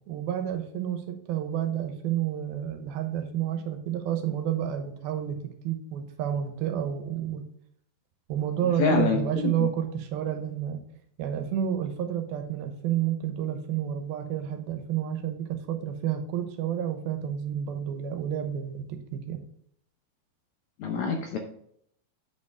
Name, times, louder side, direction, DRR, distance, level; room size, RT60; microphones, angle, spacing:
voice 1, 0.1-5.4 5.6-7.4 8.3-10.8 11.2-19.4, right 10 dB, 90° right, 6 dB, 2.9 m, -30 dB
voice 2, 8.8-9.7 20.8-21.4, left 5 dB, 70° left, 3 dB, 1.8 m, -26 dB
9.0 x 5.5 x 3.5 m, 0.69 s
omnidirectional pair, 4.2 m